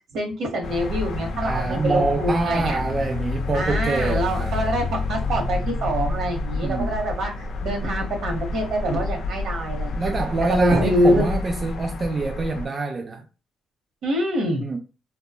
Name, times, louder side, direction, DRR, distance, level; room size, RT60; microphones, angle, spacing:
voice 1, 0.1-2.8 3.5-7.3 7.6-10.1 10.5-11.2 14.0-14.7, equal, 70° right, 1.0 m, -25 dB
sound 1, 0.6-12.7, left 3 dB, 60° left, 0.4 m, -29 dB
voice 2, 1.4-4.7 6.6-7.0 9.9-13.2 14.6-14.8, right 3 dB, 35° right, 0.3 m, -25 dB
2.9 x 2.2 x 2.2 m
cardioid pair, 90°, 0 cm